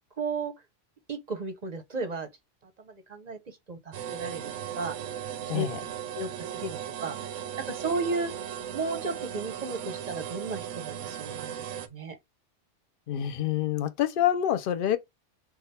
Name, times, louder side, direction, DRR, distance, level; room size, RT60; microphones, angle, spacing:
voice 1, 0.2-0.5 1.1-2.3 2.6-4.4 4.7-4.9 5.5-5.7 6.1-7.2 7.7-8.3 8.7-12.2, right 3 dB, 40° right, 0.7 m, -34 dB
sound 1, 3.9-11.9, right 10 dB, 85° right, 0.9 m, -37 dB
voice 2, 5.5-5.8 13.1-15.0, left 11 dB, 60° left, 0.6 m, -27 dB
3.5 x 2.3 x 4.1 m
omnidirectional pair, 1.2 m